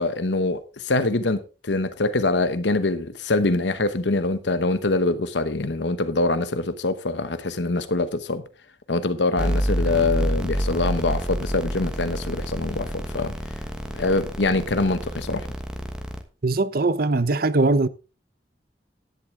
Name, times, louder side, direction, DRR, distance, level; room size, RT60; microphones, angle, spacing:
voice 1, 0.0-8.4 8.9-13.3 13.9-15.5, left 2 dB, 80° left, 1.0 m, -24 dB
sound 1, 9.4-16.2, equal, 5° right, 1.3 m, -28 dB
voice 2, 16.4-17.9, right 3 dB, 55° right, 0.8 m, -21 dB
11.5 x 10.5 x 3.7 m
head